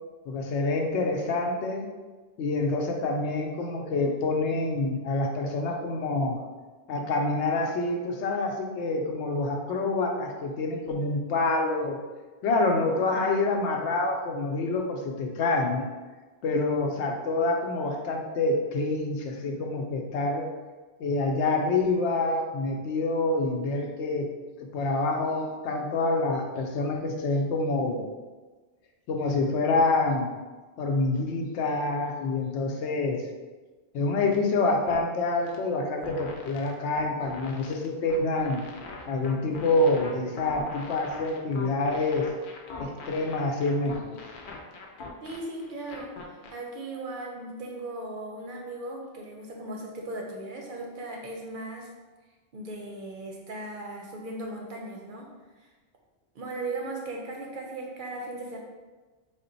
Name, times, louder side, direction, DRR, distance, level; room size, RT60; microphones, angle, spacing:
voice 1, 0.3-1.9 2.4-6.4 6.9-12.0 12.4-15.9 16.4-20.5 21.0-24.3 24.7-28.0 29.1-30.3 30.8-33.2 33.9-38.6 39.1-42.3 42.8-44.0, left 2 dB, 85° left, 2 dB, 0.9 m, -27 dB
sound 1, 34.3-34.4 34.9-35.1 35.4-35.6 36.0-46.5, left 3 dB, 60° left, 0.6 m, -42 dB
voice 2, 45.2-46.1 46.5-51.9 52.5-55.3 55.6-55.7 56.3-58.6, right 2 dB, 60° right, 0 dB, 0.6 m, -37 dB
3.6 x 2.1 x 3.8 m, 1.3 s
omnidirectional pair, 1.1 m